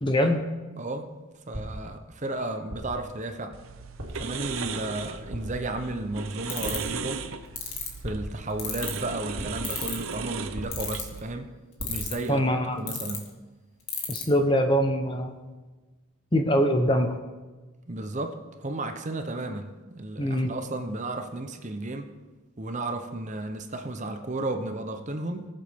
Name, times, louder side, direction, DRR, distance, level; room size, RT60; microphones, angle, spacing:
voice 1, 0.0-0.4 12.3-13.0 14.1-15.4 16.3-17.2 20.2-20.5, equal, 20° left, 6 dB, 0.8 m, -23 dB
voice 2, 0.8-1.1 1.5-3.6 4.1-7.2 8.0-11.5 11.9-12.4 12.7-13.3 17.9-22.1 22.6-25.5, right 2 dB, 35° right, 6 dB, 0.7 m, -33 dB
sound 1, 1.5-2.0 2.7-3.1 4.0-4.4 5.3-5.8 6.6-7.1 8.0-8.6 9.3-9.8 10.5-11.1 11.8-12.2, equal, 85° right, 2.2 m, -38 dB
sound 2, 3.5-11.2, right 5 dB, 65° right, 0.7 m, -37 dB
sound 3, 6.5-6.9 7.6-7.9 8.6-9.0 9.6-10.1 10.7-11.2 11.8-12.3 12.9-13.2 13.9-14.2, left 12 dB, 80° left, 2.1 m, -31 dB
19.5 x 7.6 x 3.6 m, 1.3 s
head